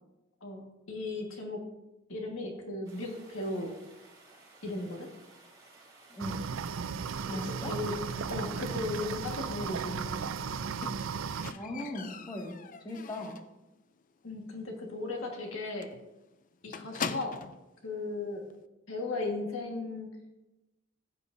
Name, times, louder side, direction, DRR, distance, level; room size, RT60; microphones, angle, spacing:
voice 1, 0.4-1.6 2.1-3.7 4.6-5.1 7.3-8.0 8.3-10.2 14.2-15.9 16.6-17.3 17.8-18.4 18.9-20.1, left 2 dB, 80° left, 1 dB, 1.6 m, -36 dB
sound 1, 2.8-10.5, right 2 dB, 20° right, 3.8 m, -57 dB
voice 2, 6.1-6.4 7.3-7.7 11.5-13.4, left 1 dB, 20° left, -1 dB, 1.9 m, -39 dB
sound 2, 6.2-11.5, right 6 dB, 75° right, 0.4 m, -35 dB
Squeak, 10.8-13.6 13.9-14.3 14.6-14.7 15.1-15.2 15.4-15.6 15.8-17.7 18.5-18.6, left 5 dB, 40° left, 0.4 m, -41 dB
15.5 x 9.7 x 2.6 m, 0.99 s
head